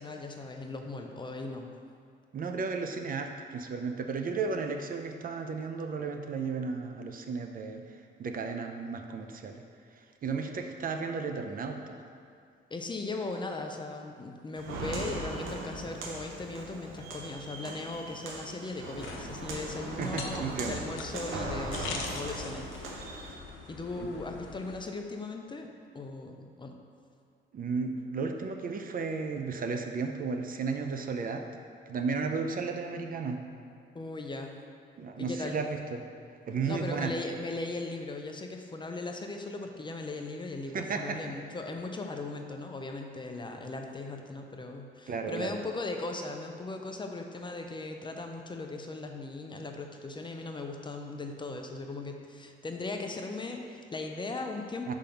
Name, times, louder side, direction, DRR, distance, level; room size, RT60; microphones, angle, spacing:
voice 1, 0.0-1.7 12.7-23.3 23.7-26.8 33.9-34.6 35.2-35.6 36.6-54.9, left 3 dB, 25° left, 3 dB, 0.5 m, -38 dB
voice 2, 2.3-7.8 8.2-9.6 10.2-12.0 20.0-20.8 24.0-24.1 27.5-31.4 31.9-33.4 35.0-36.0 36.5-37.1 40.7-41.2 45.1-45.5 54.9-55.0, right 4 dB, 45° right, 5 dB, 0.5 m, -34 dB
Walk footsteps, 14.6-23.3, right 2 dB, 85° right, 0.8 m, -39 dB
sound 1, 19.0-24.8, left 5 dB, 90° left, 0.7 m, -42 dB
5.1 x 3.6 x 5.7 m, 2.4 s
cardioid pair, 90°, 20 cm